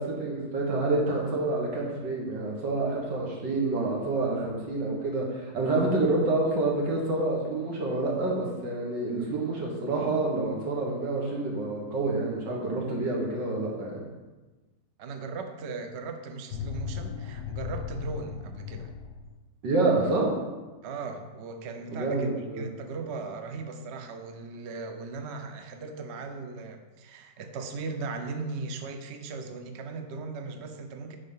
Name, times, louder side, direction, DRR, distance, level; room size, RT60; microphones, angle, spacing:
voice 1, 0.0-14.0 19.6-20.4 21.9-22.7, right 2 dB, 85° right, -1 dB, 2.2 m, -28 dB
voice 2, 15.0-18.9 20.8-31.2, right 4 dB, 55° right, 6 dB, 0.7 m, -38 dB
sound 1, 16.5-19.3, left 6 dB, 45° left, 0.8 m, -36 dB
9.2 x 3.6 x 5.6 m, 1.2 s
omnidirectional pair, 1.9 m